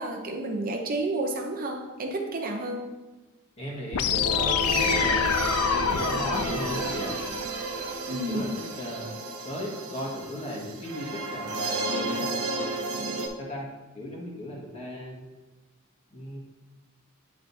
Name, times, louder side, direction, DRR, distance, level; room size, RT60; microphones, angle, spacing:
voice 1, 0.0-2.8 8.1-8.5, right 2 dB, 40° right, 2 dB, 0.7 m, -31 dB
voice 2, 3.6-7.1 8.0-8.5 8.8-9.1 9.4-12.5 13.4-13.7 13.9-15.2 16.1-16.4, equal, 30° left, -3 dB, 1.6 m, -36 dB
sound 1, 3.9-7.9, left 8 dB, 80° left, 0.4 m, -28 dB
sound 2, 4.0-13.3, right 1 dB, 80° right, 0.9 m, -31 dB
9.5 x 5.5 x 2.7 m, 1.2 s
head